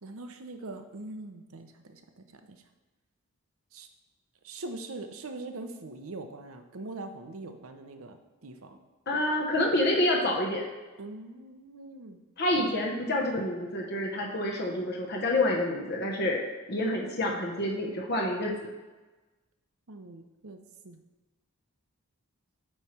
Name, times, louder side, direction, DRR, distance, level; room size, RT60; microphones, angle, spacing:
voice 1, 0.0-2.6 3.7-3.9 4.4-8.2 8.4-8.8 11.0-12.2 19.9-21.0, right 2 dB, 70° right, 6 dB, 0.7 m, -42 dB
voice 2, 9.1-10.6 12.4-18.5, left 1 dB, 45° left, -1 dB, 0.9 m, -28 dB
8.8 x 3.2 x 5.8 m, 1.2 s
head